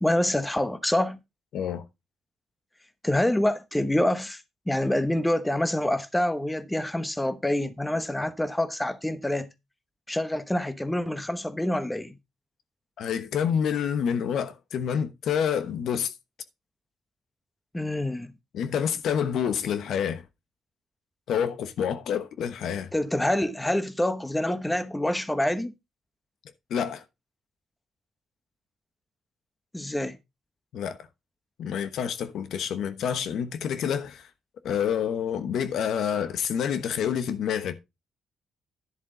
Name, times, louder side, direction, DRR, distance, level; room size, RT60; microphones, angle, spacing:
voice 1, 0.0-1.2 3.0-9.5 10.1-12.2 17.7-18.3 22.9-25.7 29.7-30.2, left 1 dB, 10° left, 1.1 m, -26 dB
voice 2, 1.5-1.8 13.0-16.1 18.5-20.2 21.3-22.9 26.7-27.0 30.7-31.0 31.6-34.3 34.6-37.8, left 8 dB, 75° left, 1.0 m, -28 dB
10.5 x 7.3 x 3.8 m
cardioid pair, 90°, 0 cm